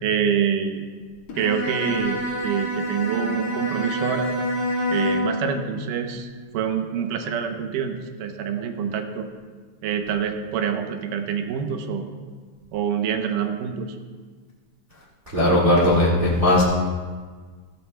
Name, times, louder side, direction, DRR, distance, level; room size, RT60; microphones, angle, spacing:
voice 1, 0.0-0.8 1.3-4.3 4.9-6.3 6.5-9.3 9.8-12.0 12.7-14.0, right 7 dB, 75° right, 6 dB, 2.3 m, -26 dB
Bowed string instrument, 1.3-5.5, equal, 50° left, 2.4 m, -27 dB
voice 2, 15.3-16.6, left 1 dB, 30° right, -6 dB, 1.4 m, -18 dB
16.0 x 14.0 x 2.3 m, 1.5 s
omnidirectional pair, 3.9 m